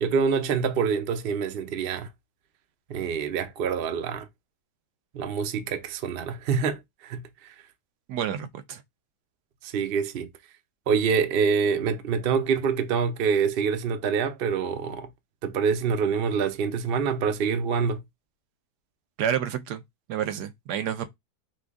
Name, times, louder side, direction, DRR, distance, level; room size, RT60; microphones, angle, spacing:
voice 1, 0.0-2.1 2.9-4.3 5.1-7.2 9.6-10.3 10.9-15.1 15.4-18.0, right 6 dB, 50° right, 0.7 m, -26 dB
voice 2, 8.1-8.8 19.2-19.8 20.1-21.1, right 9 dB, 80° right, 1.2 m, -29 dB
5.1 x 2.4 x 3.5 m
omnidirectional pair, 1.7 m